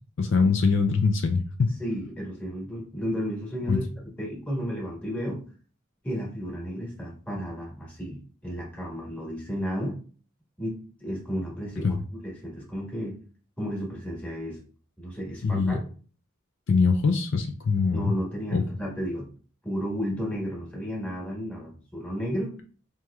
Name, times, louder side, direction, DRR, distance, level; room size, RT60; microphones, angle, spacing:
voice 1, 0.2-1.8 3.7-3.8 11.8-12.0 15.4-15.8 16.7-18.1 18.5-18.6, left 4 dB, 65° left, 5 dB, 0.4 m, -23 dB
voice 2, 1.8-3.9 4.2-5.4 6.0-10.0 10.6-12.0 12.2-13.2 13.6-14.6 15.0-15.8 17.9-19.3 19.6-22.6, equal, 5° left, -4 dB, 1.3 m, -33 dB
4.6 x 2.9 x 2.3 m, 0.41 s
head